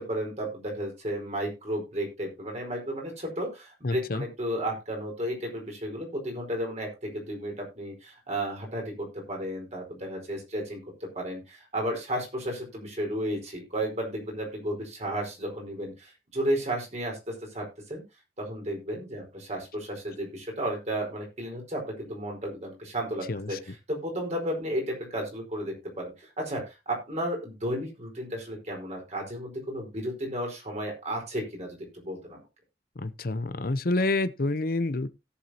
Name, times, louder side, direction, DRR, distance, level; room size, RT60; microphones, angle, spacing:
voice 1, 0.0-18.0 18.4-23.6 23.9-32.4, right 1 dB, 40° right, 4.6 m, -33 dB
voice 2, 3.8-4.2 23.3-23.6 33.0-35.1, left 2 dB, 55° left, 0.8 m, -28 dB
17.0 x 7.2 x 2.9 m
head